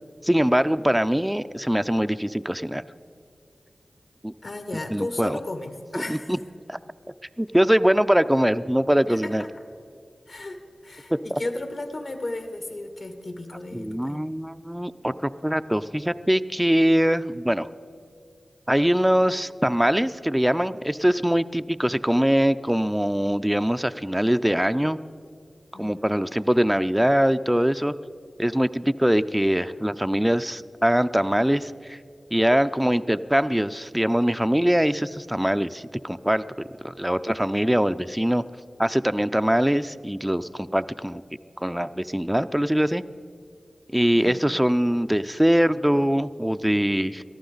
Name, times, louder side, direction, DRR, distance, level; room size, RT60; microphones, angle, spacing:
voice 1, 0.2-2.8 4.2-4.3 4.9-5.4 5.9-6.4 6.7-6.8 7.4-9.4 11.1-11.4 13.7-17.7 18.7-25.0 25.7-27.9 28.4-32.0 32.3-36.4 36.8-38.4 38.8-41.2 41.6-43.0 43.9-47.2, equal, 5° right, 10 dB, 0.4 m, -22 dB
voice 2, 4.4-6.3 9.1-9.5 10.3-14.2 25.7-26.1 44.1-44.4, left 2 dB, 60° left, 6 dB, 1.7 m, -34 dB
23.0 x 14.0 x 4.0 m, 2.4 s
cardioid pair, 45°, 0 cm